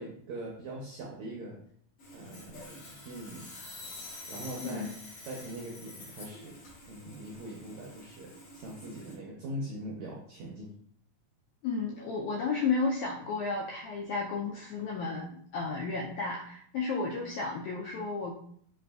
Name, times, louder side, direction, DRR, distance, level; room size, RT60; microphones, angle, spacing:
voice 1, 0.0-1.6 2.1-3.6 4.3-4.9 5.3-6.6 6.9-10.7, right 1 dB, 80° right, -3 dB, 1.6 m, -42 dB
Sawing, 2.0-9.2, left 2 dB, 60° left, 2.1 m, -48 dB
voice 2, 11.6-18.3, left 4 dB, 85° left, -1 dB, 1.7 m, -33 dB
5.2 x 3.3 x 2.3 m, 0.63 s
omnidirectional pair, 4.0 m